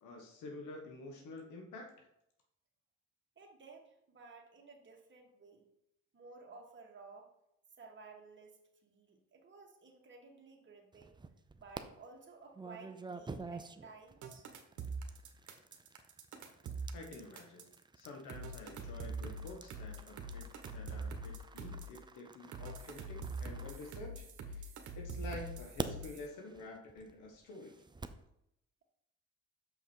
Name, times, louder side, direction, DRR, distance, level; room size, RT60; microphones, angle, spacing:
voice 1, 0.0-2.1 16.9-17.7 17.9-27.8, left 2 dB, 90° left, 2 dB, 1.3 m, -49 dB
voice 2, 3.4-5.7 6.1-7.3 7.8-11.2 11.6-14.5, right 4 dB, 40° right, 0 dB, 1.8 m, -55 dB
sound 1, 10.9-11.8 12.5-24.6 25.2-28.3, right 3 dB, 15° right, 0.5 m, -48 dB
sound 2, 14.2-17.7 18.3-22.0 22.5-26.3, right 3 dB, 70° right, 1.2 m, -43 dB
6.5 x 5.7 x 4.5 m, 0.79 s
cardioid pair, 90°, 30 cm